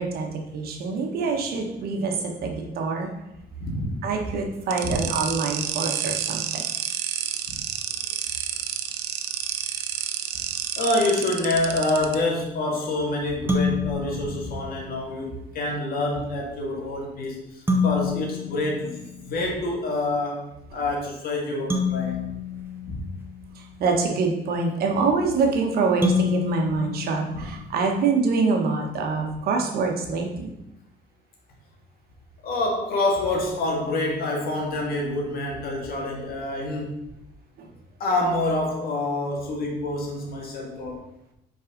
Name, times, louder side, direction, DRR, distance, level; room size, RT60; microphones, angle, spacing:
voice 1, 0.0-3.1 4.0-6.6 23.5-30.5 37.6-37.7, right 4 dB, 65° right, 1 dB, 1.4 m, -25 dB
voice 2, 3.6-3.9 4.8-5.0 7.5-7.6 10.8-22.2 22.8-23.0 27.3-27.5 29.1-29.2 32.4-37.0 38.0-41.0, left 2 dB, 60° left, 0 dB, 2.0 m, -27 dB
sound 1, 4.7-12.1, right 10 dB, 85° right, 0.7 m, -29 dB
sound 2, 13.5-15.2 17.7-19.7 21.7-23.8 26.0-28.1, left 4 dB, 15° right, 1.2 m, -28 dB
5.7 x 4.8 x 5.2 m, 0.87 s
cardioid pair, 110°, 17 cm